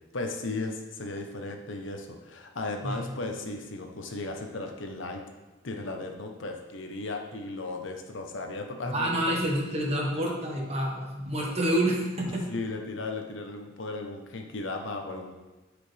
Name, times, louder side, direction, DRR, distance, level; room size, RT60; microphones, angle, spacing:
voice 1, 0.1-5.2 5.6-9.1 12.5-15.3, left 2 dB, 70° left, 3 dB, 0.9 m, -35 dB
voice 2, 8.9-12.4, right 1 dB, 30° right, -2 dB, 1.5 m, -28 dB
12.0 x 5.0 x 3.4 m, 1.1 s
head